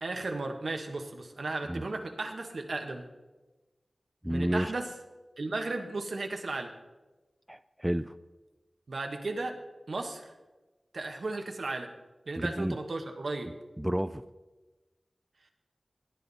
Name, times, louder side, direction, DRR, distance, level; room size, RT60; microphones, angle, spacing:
voice 1, 0.0-3.0 4.3-4.9 5.4-6.7 8.9-9.5 9.9-10.3 10.9-11.9 12.3-13.6, right 2 dB, 75° right, 4 dB, 1.4 m, -35 dB
voice 2, 4.2-4.7 7.5-8.1 12.4-12.8 13.8-14.2, right 1 dB, 10° right, 12 dB, 0.3 m, -30 dB
18.0 x 9.7 x 4.2 m, 1.2 s
wide cardioid pair, 90°, 0 cm